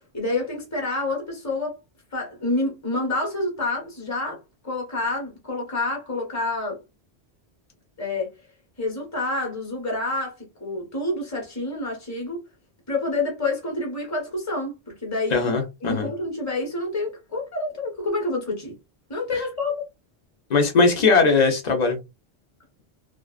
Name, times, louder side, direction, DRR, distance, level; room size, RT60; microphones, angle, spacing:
voice 1, 0.1-1.8 2.1-6.8 8.0-8.3 8.8-12.4 12.9-15.5 15.8-18.8 19.1-19.9, left 2 dB, 15° left, 0.9 m, -28 dB
voice 2, 15.3-16.1 19.3-19.4 20.5-22.0, left 4 dB, 45° left, 0.8 m, -19 dB
2.5 x 2.4 x 2.3 m
omnidirectional pair, 1.1 m